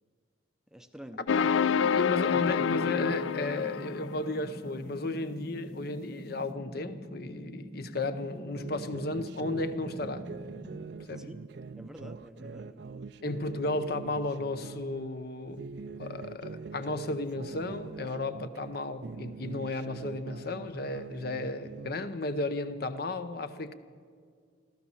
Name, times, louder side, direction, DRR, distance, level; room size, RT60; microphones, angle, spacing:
voice 1, 0.7-1.3 11.2-11.4 11.8-13.1, equal, 5° right, 0.6 m, -48 dB
sound 1, 1.3-4.3, left 7 dB, 85° left, 0.4 m, -28 dB
voice 2, 1.8-10.3 11.1-11.3 13.2-15.7 16.0-23.7, left 2 dB, 55° left, 0.7 m, -34 dB
sound 2, 2.3-10.9, equal, 20° right, 0.9 m, -44 dB
sound 3, 8.6-15.0 15.5-18.8 19.0-22.2, right 4 dB, 60° right, 0.4 m, -43 dB
15.5 x 13.0 x 7.1 m
head